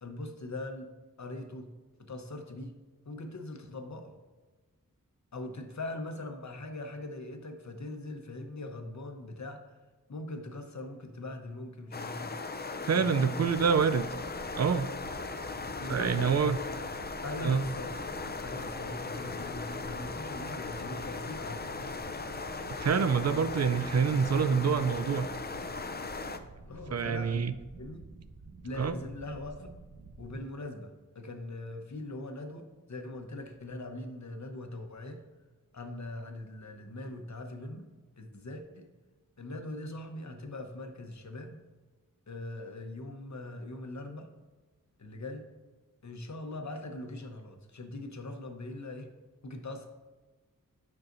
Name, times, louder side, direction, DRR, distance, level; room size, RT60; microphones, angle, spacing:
voice 1, 0.0-0.9 1.2-1.7 2.0-2.7 3.1-4.2 5.3-9.7 10.1-12.3 12.9-13.8 15.8-16.4 17.2-18.1 18.4-22.0 26.7-27.4 27.8-28.1 28.6-29.7 30.2-35.2 35.7-37.9 38.2-38.9 39.4-41.6 42.3-44.3 45.0-45.5 46.0-49.1 49.4-49.9, left 2 dB, 55° left, 5 dB, 0.9 m, -41 dB
sound 1, 11.9-26.4, left 3 dB, 30° left, 0.5 m, -38 dB
voice 2, 12.8-14.1 14.6-14.9 15.9-16.6 17.4-17.6 22.7-25.3 26.9-27.5 28.8-28.9, right 6 dB, 50° right, 12 dB, 0.4 m, -26 dB
sound 2, 13.4-30.4, right 3 dB, 85° right, 1.1 m, -50 dB
9.2 x 5.7 x 2.6 m, 1.3 s
wide cardioid pair, 65°, 34 cm